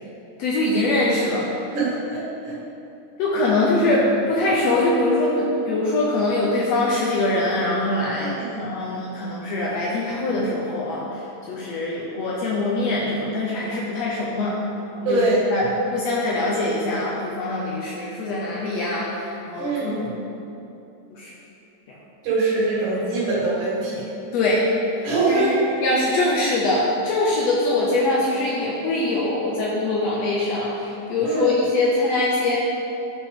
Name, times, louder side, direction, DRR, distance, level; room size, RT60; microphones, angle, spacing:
voice 1, 0.4-1.5 3.2-11.1 11.5-14.6 15.0-15.2 15.5-20.0 21.1-21.3 21.9-22.0 24.3-25.6 25.8-32.6, left 2 dB, 80° left, -4 dB, 1.5 m, -23 dB
voice 2, 1.7-2.5 8.2-8.6 15.0-15.8 19.6-20.1 22.2-24.1 25.0-25.6 31.2-31.5, right 2 dB, 70° right, -7 dB, 3.2 m, -23 dB
10.5 x 4.4 x 3.6 m, 2.8 s
omnidirectional pair, 3.8 m